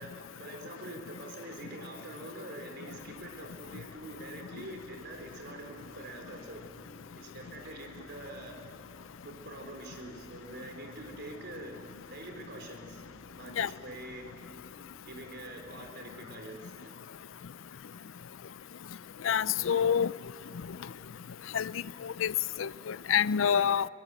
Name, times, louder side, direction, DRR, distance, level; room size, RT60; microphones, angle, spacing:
voice 1, 0.0-6.6 7.1-8.6 9.2-11.8 12.1-13.0 13.4-14.3 15.1-16.9, right 1 dB, 55° right, 3 dB, 4.2 m, -45 dB
sound 1, 2.9-15.9, equal, 30° left, 2.7 m, -57 dB
voice 2, 19.2-20.1 21.5-23.9, left 8 dB, 70° left, 19 dB, 0.4 m, -27 dB
22.5 x 22.0 x 7.9 m, 2.7 s
head